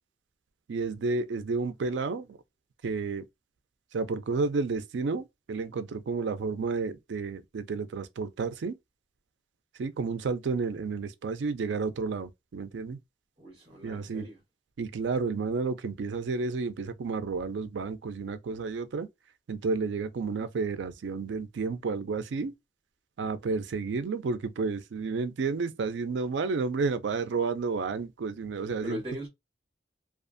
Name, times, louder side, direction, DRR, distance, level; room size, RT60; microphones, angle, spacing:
voice 1, 0.7-2.4 2.8-3.2 3.9-8.8 9.8-13.0 13.8-14.3 14.8-19.1 19.5-22.5 23.2-29.0, right 4 dB, 80° right, 0.4 m, -31 dB
voice 2, 13.4-14.4 28.8-29.3, equal, 30° right, 1.2 m, -39 dB
2.5 x 2.3 x 2.5 m
head